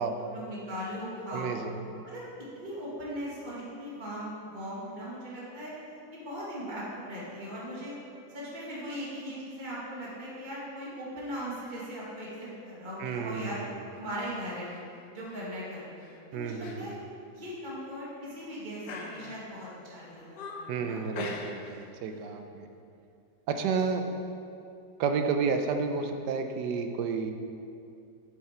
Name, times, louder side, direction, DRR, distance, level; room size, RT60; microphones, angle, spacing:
voice 1, 0.2-1.7 2.0-2.2 2.5-5.7 6.1-7.9 8.3-13.6 14.0-14.7 15.1-16.0 16.3-17.0 17.3-20.4 20.8-21.0, equal, 30° right, -7 dB, 1.9 m, -39 dB
voice 2, 1.3-1.7 13.0-13.7 16.3-16.9 20.7-22.7 23.5-24.0 25.0-27.3, right 5 dB, 75° right, 6 dB, 1.3 m, -31 dB
sound 1, 14.5-14.8 15.2-15.5 16.0-16.2 16.6-16.8 17.1-17.2 17.9-18.4 18.8-19.7 20.1-20.8 21.1-21.8 22.1-22.3, left 3 dB, 75° left, 1.4 m, -42 dB
7.7 x 7.3 x 4.3 m, 2.6 s
omnidirectional pair, 1.8 m